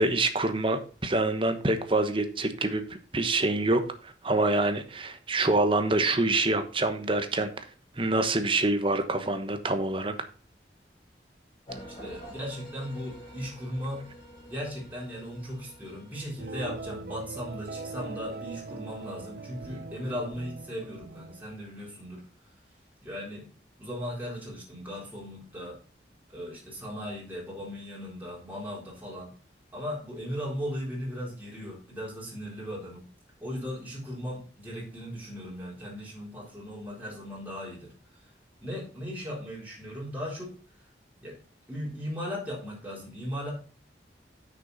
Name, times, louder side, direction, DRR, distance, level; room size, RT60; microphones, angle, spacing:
voice 1, 0.0-7.5 8.0-10.1, right 2 dB, 30° right, 8 dB, 1.1 m, -26 dB
sound 1, 11.7-17.7, equal, 30° left, 5.3 m, -48 dB
voice 2, 12.0-14.0 14.4-22.2 23.0-23.5 23.8-25.8 26.3-29.3 29.7-33.0 33.4-37.9 38.6-40.5 41.2-41.4 41.7-43.5, equal, 10° right, -5 dB, 3.9 m, -37 dB
sound 2, 16.4-21.4, right 3 dB, 60° right, 0.7 m, -41 dB
9.8 x 6.2 x 4.1 m, 0.39 s
head